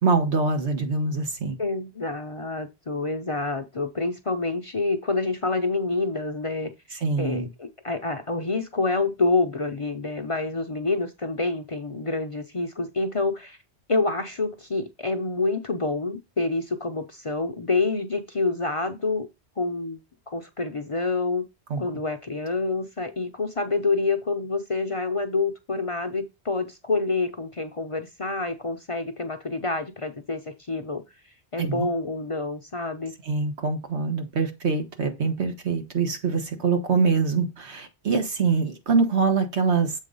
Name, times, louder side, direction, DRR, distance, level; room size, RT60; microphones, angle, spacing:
voice 1, 0.0-1.6 7.0-7.5 21.7-21.8 31.6-31.9 33.2-39.9, right 4 dB, 80° right, 1.6 m, -24 dB
voice 2, 1.6-13.6 13.9-19.3 19.6-20.0 20.3-21.4 21.8-31.0 31.5-33.1, left 3 dB, 35° left, 0.6 m, -27 dB
7.3 x 3.7 x 5.3 m
omnidirectional pair, 1.1 m